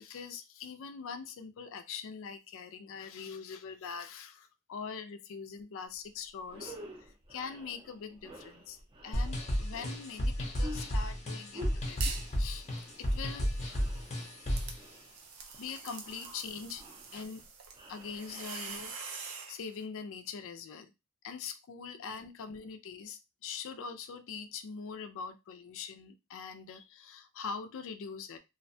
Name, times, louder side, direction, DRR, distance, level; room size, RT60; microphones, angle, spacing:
voice 1, 0.0-12.7 13.0-13.5 14.1-14.2 14.7-14.8 15.6-16.8 17.1-17.4 17.9-20.9 21.2-28.4, left 6 dB, 65° left, 9 dB, 0.4 m, -43 dB
sound 1, 5.9-6.1 6.4-18.8, equal, 25° right, 0.5 m, -50 dB
sound 2, 9.1-14.8, equal, 30° left, 0.7 m, -33 dB
sound 3, 12.0-12.4 12.8-19.6, right 5 dB, 70° right, 0.5 m, -45 dB
2.4 x 2.1 x 2.6 m, 0.25 s
head